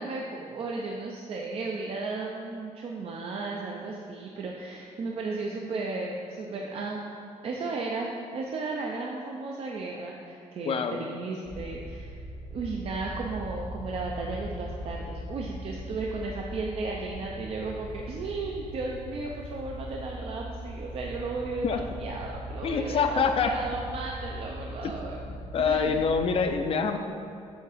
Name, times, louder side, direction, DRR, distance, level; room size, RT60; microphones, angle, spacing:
voice 1, 0.0-7.0 7.4-12.2 12.5-25.2 25.7-26.0, right 3 dB, 50° right, -1 dB, 0.5 m, -34 dB
voice 2, 10.7-11.1 21.6-21.8 22.6-23.5 24.8-24.9 25.5-27.0, left 5 dB, 50° left, 6 dB, 0.5 m, -25 dB
sound 1, 11.4-26.5, equal, 80° right, 1.3 m, -40 dB
7.1 x 3.6 x 4.9 m, 2.4 s
cardioid pair, 130°, 12 cm